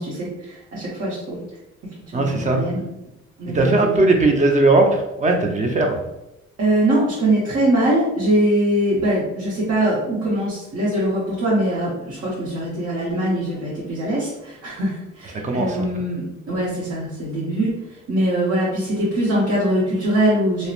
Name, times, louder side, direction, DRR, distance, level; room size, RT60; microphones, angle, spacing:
voice 1, 0.0-1.4 2.1-2.8 3.4-4.0 6.6-17.7 18.1-20.7, right 1 dB, 55° right, -7 dB, 0.9 m, -22 dB
voice 2, 2.1-2.7 3.5-6.0 15.4-15.9, right 2 dB, 25° right, 2 dB, 0.5 m, -18 dB
2.7 x 2.1 x 2.4 m, 0.91 s
cardioid pair, 90°, 30 cm